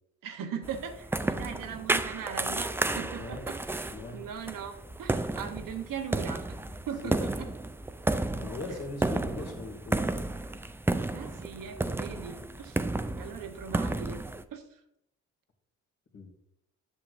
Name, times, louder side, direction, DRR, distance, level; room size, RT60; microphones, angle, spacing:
voice 1, 0.2-6.4 6.9-7.5 8.4-8.8 11.1-12.8 13.2-14.2 14.5-14.8, right 7 dB, 70° right, 6 dB, 1.0 m, -39 dB
sound 1, 0.6-14.4, right 2 dB, 5° right, 0.3 m, -32 dB
voice 2, 3.2-3.5 3.9-4.2 7.0-7.3 8.3-10.3 16.1-16.3, left 3 dB, 45° left, 1 dB, 2.1 m, -40 dB
7.5 x 6.5 x 2.5 m, 0.76 s
supercardioid pair, 55°, 34 cm